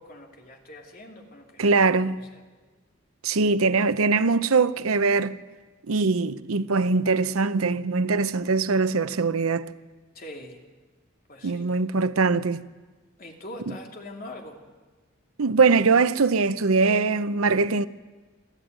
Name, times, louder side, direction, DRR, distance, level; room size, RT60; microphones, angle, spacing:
voice 1, 0.0-1.6 2.2-2.4 10.1-10.6 11.3-11.6 13.2-14.6, left 1 dB, 45° left, 2.9 m, -42 dB
voice 2, 1.6-2.1 3.2-5.4 5.9-9.7 11.4-12.6 15.4-17.9, right 4 dB, 85° right, 0.7 m, -22 dB
22.5 x 14.0 x 9.4 m
head